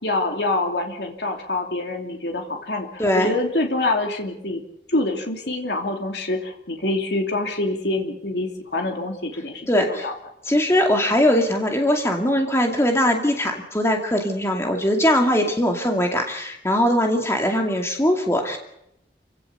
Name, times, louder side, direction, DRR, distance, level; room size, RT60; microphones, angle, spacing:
voice 1, 0.0-4.6 4.9-10.1, left 2 dB, 75° left, 3 dB, 2.8 m, -26 dB
voice 2, 3.0-3.3 9.7-9.8 10.5-18.6, left 1 dB, 15° left, 2 dB, 2.4 m, -20 dB
27.5 x 16.5 x 6.8 m, 0.79 s
head